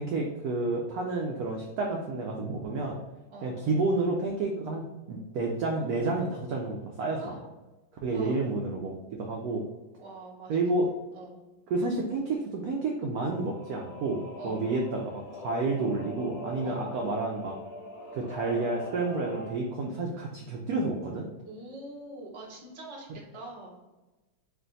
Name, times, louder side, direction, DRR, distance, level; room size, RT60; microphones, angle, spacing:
voice 1, 0.0-3.0 3.4-7.4 8.0-9.7 10.5-10.9 11.7-14.2 14.4-17.6 18.1-21.3, right 3 dB, 85° right, 0 dB, 0.8 m, -30 dB
voice 2, 8.1-8.4 10.0-10.6 11.1-11.4 14.4-14.7 16.6-16.9 21.4-23.8, right 2 dB, 35° right, -4 dB, 0.4 m, -44 dB
Singing / Musical instrument, 13.2-19.5, left 2 dB, 70° left, 1.0 m, -43 dB
3.4 x 2.5 x 3.8 m, 1.1 s
omnidirectional pair, 2.2 m